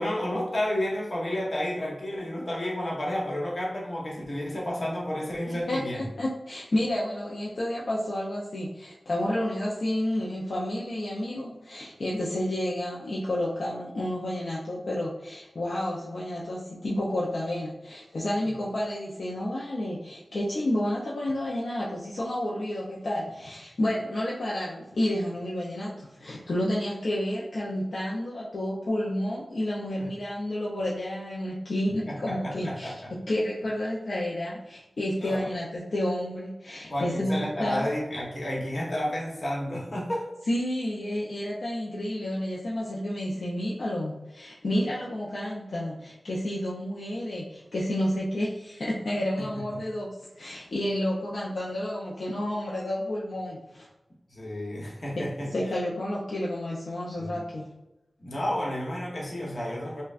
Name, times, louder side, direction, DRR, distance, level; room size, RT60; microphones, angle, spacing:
voice 1, 0.0-6.1 30.0-30.1 32.1-33.1 35.2-35.4 36.9-40.2 49.4-49.6 54.3-55.5 57.2-57.4 58.2-60.0, left 1 dB, 55° left, -3 dB, 1.1 m, -31 dB
voice 2, 5.5-32.9 33.3-37.9 40.5-50.1 50.4-53.9 55.1-55.2 55.5-57.6, left 1 dB, 75° left, -5 dB, 0.6 m, -30 dB
5.4 x 2.3 x 2.5 m, 0.98 s
wide cardioid pair, 85°, 0 cm